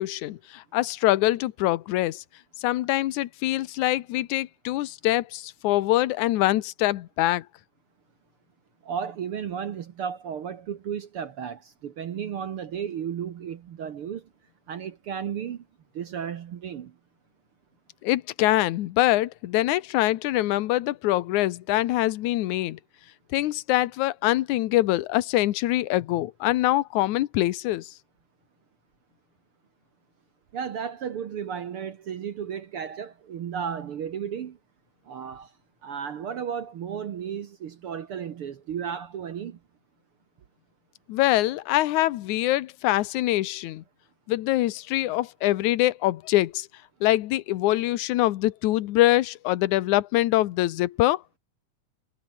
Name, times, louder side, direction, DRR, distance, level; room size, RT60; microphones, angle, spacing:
voice 1, 0.0-2.2 2.6-7.5 18.0-22.8 23.3-27.9 41.1-43.8 44.3-46.7 47.0-51.2, left 16 dB, 70° left, 2.2 m, -24 dB
voice 2, 8.8-14.3 14.7-15.6 15.9-16.9 30.5-34.6 35.1-35.5 35.8-39.6, right 8 dB, 60° right, 1.6 m, -34 dB
omnidirectional pair, 3.7 m